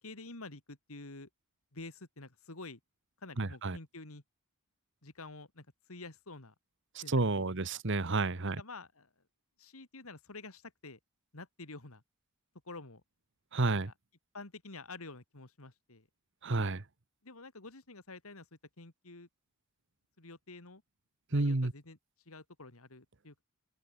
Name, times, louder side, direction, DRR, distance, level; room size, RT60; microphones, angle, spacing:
voice 1, 0.0-1.3 1.7-2.8 3.2-4.2 5.0-6.5 7.0-7.8 8.6-9.1 9.6-11.0 11.3-12.0 12.6-13.0 13.7-13.9 14.3-16.1 17.2-18.5 18.8-19.3 20.2-20.8 21.3-22.0 22.3-23.4, left 3 dB, 75° left, 2.8 m, -49 dB
voice 2, 3.4-3.8 7.1-8.6 13.5-13.9 16.4-16.8 21.3-21.7, right 2 dB, 55° right, 1.3 m, -30 dB
open air
head